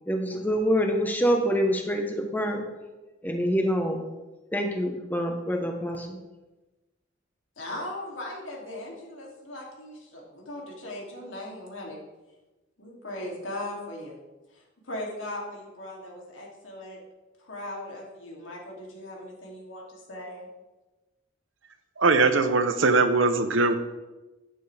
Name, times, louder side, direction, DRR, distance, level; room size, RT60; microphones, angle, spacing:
voice 1, 0.1-2.6 3.2-4.0 4.5-6.2, equal, 10° left, 3 dB, 1.1 m, -26 dB
voice 2, 7.6-12.0 12.8-14.2 14.5-17.0 17.4-20.5, left 1 dB, 90° left, -2 dB, 2.8 m, -38 dB
voice 3, 22.0-23.7, right 3 dB, 90° right, 9 dB, 0.9 m, -21 dB
11.0 x 9.3 x 3.4 m, 1.1 s
head